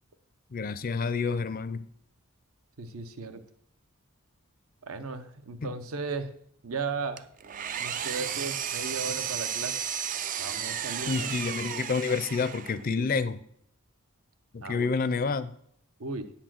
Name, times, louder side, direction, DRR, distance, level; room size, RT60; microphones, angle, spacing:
voice 1, 0.5-1.9 11.1-13.4 14.5-15.5, left 4 dB, 40° left, 13 dB, 0.5 m, -29 dB
voice 2, 2.8-3.4 4.8-6.3 6.6-7.3 7.8-9.9 10.4-11.3 12.8-13.1 14.6-14.9 16.0-16.3, right 4 dB, 70° right, 10 dB, 0.8 m, -36 dB
Engine, 7.2-12.9, right 9 dB, 35° right, 0.4 m, -33 dB
9.9 x 4.3 x 7.6 m, 0.69 s
head